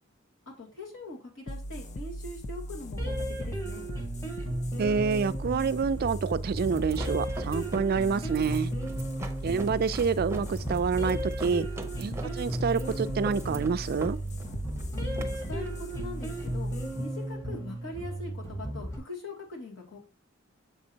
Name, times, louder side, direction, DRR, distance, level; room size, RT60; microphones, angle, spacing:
voice 1, 0.5-3.8 14.9-20.0, left 2 dB, 70° left, 2.4 m, -42 dB
sound 1, 1.5-18.5, equal, 35° left, 0.5 m, -39 dB
sound 2, 3.0-19.0, right 1 dB, 15° left, 1.4 m, -35 dB
voice 2, 4.8-8.7 9.4-11.7 12.0-14.2, right 5 dB, 50° right, 0.3 m, -27 dB
sound 3, 6.7-17.4, right 2 dB, 15° right, 0.7 m, -43 dB
7.3 x 5.2 x 2.8 m
head